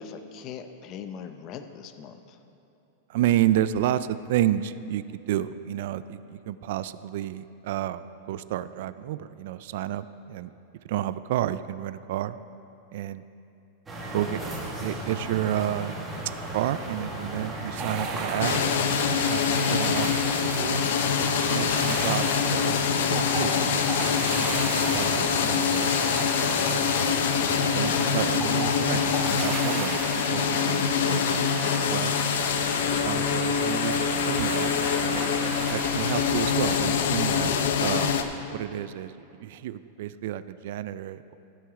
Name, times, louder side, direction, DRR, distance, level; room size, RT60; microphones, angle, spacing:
voice 1, 0.0-2.4, left 7 dB, 30° left, 8 dB, 0.5 m, -40 dB
voice 2, 3.1-10.5 10.8-12.4 12.9-13.2 14.1-16.0 16.5-20.9 21.5-24.6 24.9-26.0 26.6-26.8 27.7-32.2 32.8-34.0 34.3-34.9 35.7-38.2 38.5-39.1 39.4-41.4, right 12 dB, 60° right, 15 dB, 0.3 m, -31 dB
sound 1, 13.9-29.4, right 1 dB, 10° right, 1.6 m, -35 dB
sound 2, 17.8-36.9, right 5 dB, 35° right, 0.9 m, -36 dB
sound 3, 18.4-38.2, left 7 dB, 75° left, 0.6 m, -25 dB
15.0 x 6.2 x 4.8 m, 2.8 s
supercardioid pair, 160°, 0 cm